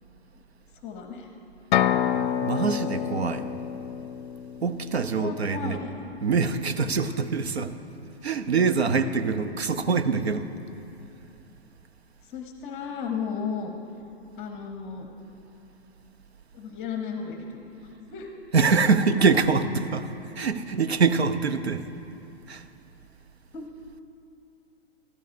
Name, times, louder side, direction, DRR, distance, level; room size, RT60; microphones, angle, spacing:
voice 1, 0.8-1.3 5.1-5.9 7.0-7.3 8.8-9.2 12.2-13.7 14.4-15.1 16.5-18.3 23.5-23.7, left 6 dB, 20° left, 0.7 m, -35 dB
sound 1, 1.7-5.5, left 10 dB, 50° left, 0.4 m, -28 dB
voice 2, 2.4-3.5 4.6-5.8 6.2-7.7 8.2-10.5 18.5-20.1 20.4-21.9 22.5-22.6, right 5 dB, 75° right, 0.7 m, -24 dB
15.5 x 12.5 x 2.6 m
figure-of-eight pair, 110°, 32 cm